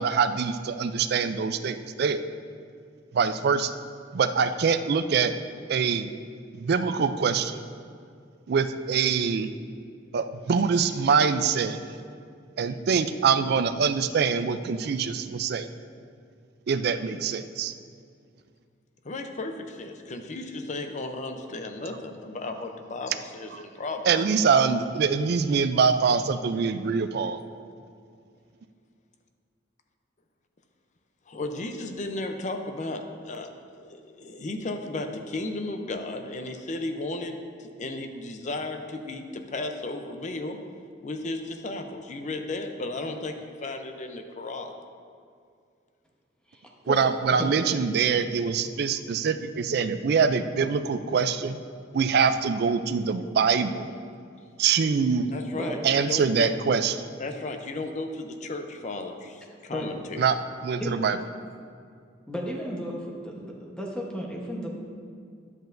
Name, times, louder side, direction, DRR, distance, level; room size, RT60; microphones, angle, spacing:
voice 1, 0.0-2.2 3.1-3.8 4.1-5.3 5.7-6.1 6.5-7.6 8.5-9.5 10.1-11.8 12.6-15.7 16.7-17.7 24.1-27.4 46.9-51.6 51.9-53.9 54.6-55.3 55.8-57.1 60.2-60.4 60.6-61.2, right 5 dB, 55° right, 11 dB, 0.4 m, -24 dB
voice 2, 19.0-24.2 31.3-40.6 41.0-44.8 55.3-56.5 57.2-60.2, left 2 dB, 40° left, 6 dB, 0.5 m, -34 dB
voice 3, 46.5-47.5 55.5-55.7 59.7-59.9 60.8-61.0 62.3-64.7, equal, 5° left, -2 dB, 1.0 m, -34 dB
11.0 x 7.9 x 2.6 m, 2.3 s
head